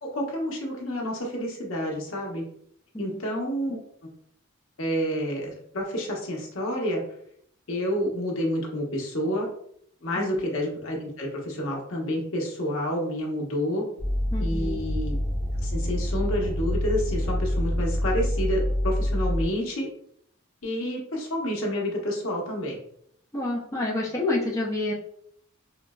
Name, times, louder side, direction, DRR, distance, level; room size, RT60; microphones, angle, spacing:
voice 1, 0.0-2.4 3.0-3.8 4.8-7.0 7.7-9.5 10.0-13.8 14.4-15.2 15.6-19.9 20.6-22.8, equal, 85° left, -1 dB, 0.9 m, -29 dB
sound 1, 14.0-19.5, equal, 30° right, 0.8 m, -26 dB
voice 2, 14.3-14.8 23.3-24.9, left 2 dB, 15° left, -4 dB, 0.5 m, -28 dB
3.8 x 2.0 x 2.3 m, 0.67 s
head